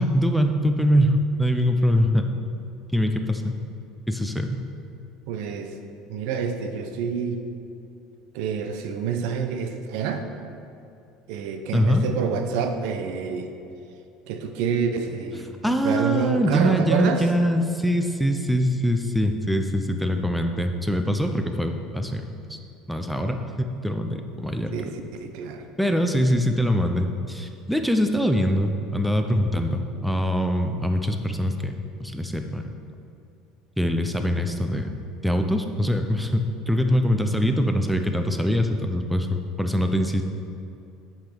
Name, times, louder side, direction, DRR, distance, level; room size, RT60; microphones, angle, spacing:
voice 1, 0.0-2.3 2.9-3.6 4.1-4.6 11.7-12.1 15.6-22.2 22.5-22.6 22.9-23.4 23.8-24.7 25.8-32.7 33.8-34.9 35.2-40.2, equal, ahead, 5 dB, 0.5 m, -23 dB
voice 2, 5.3-5.7 6.1-7.4 8.3-10.2 11.3-13.5 14.3-17.2 24.7-24.9 25.2-25.6, right 6 dB, 65° right, 6 dB, 0.8 m, -27 dB
9.0 x 5.7 x 6.8 m, 2.6 s
cardioid pair, 170°, 0 cm